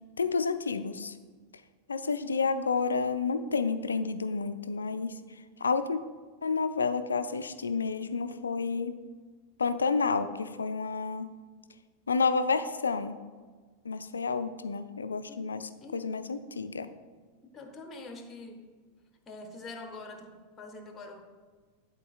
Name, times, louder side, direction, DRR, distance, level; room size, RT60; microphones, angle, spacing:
voice 1, 0.2-1.2 1.9-5.2 5.6-6.0 6.4-9.0 9.6-11.3 12.1-13.2 13.8-15.6 15.9-16.9, left 4 dB, 75° left, 11 dB, 0.4 m, -30 dB
voice 2, 17.5-18.7 19.3-21.2, left 2 dB, 20° left, 4 dB, 0.9 m, -44 dB
11.0 x 3.9 x 2.4 m, 1.4 s
figure-of-eight pair, 90°, 0 cm